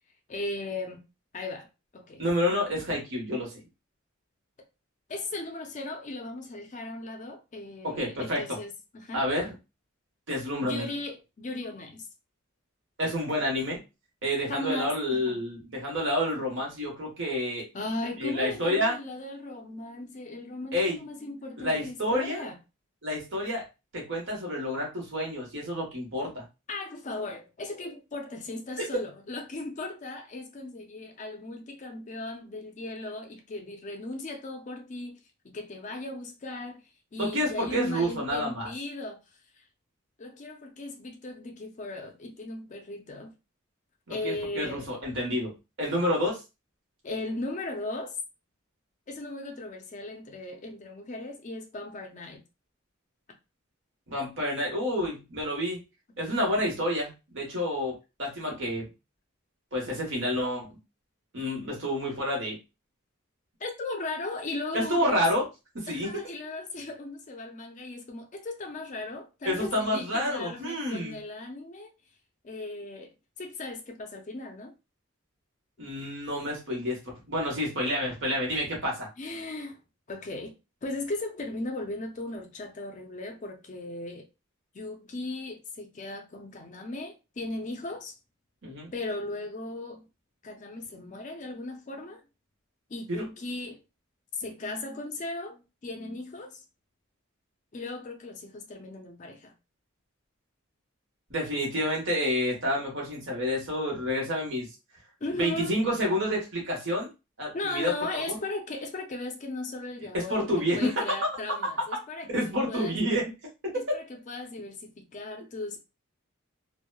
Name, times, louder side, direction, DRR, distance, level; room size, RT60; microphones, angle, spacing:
voice 1, 0.3-1.0 1.3-1.7 1.9-2.2 5.1-9.3 10.6-12.1 14.5-15.4 17.7-22.5 26.7-36.8 37.1-39.2 39.6-39.7 40.2-43.3 44.1-44.9 47.0-48.2 49.1-52.4 63.6-65.3 65.9-71.9 72.4-74.7 79.2-79.8 80.1-80.5 80.8-84.3 84.7-88.1 88.9-90.0 90.4-92.2 92.9-93.8 94.3-96.6 97.7-99.5 105.2-105.7 107.5-113.0 113.7-115.8, left 2 dB, 35° left, 0.4 m, -37 dB
voice 2, 2.2-3.5 7.8-8.6 9.1-9.5 10.3-10.9 13.0-13.8 14.2-17.7 18.2-19.0 20.7-21.0 21.6-22.4 23.0-23.6 23.9-26.4 37.2-38.7 44.1-45.5 45.8-46.4 54.1-55.8 56.2-58.8 59.7-60.7 61.3-62.6 64.7-65.4 65.7-66.2 69.4-71.1 75.8-77.0 77.3-79.1 88.6-88.9 93.1-93.3 101.3-104.7 105.3-107.1 107.4-108.4 110.1-110.9 112.3-113.3, equal, 60° right, 1.1 m, -29 dB
2.9 x 2.1 x 2.2 m
head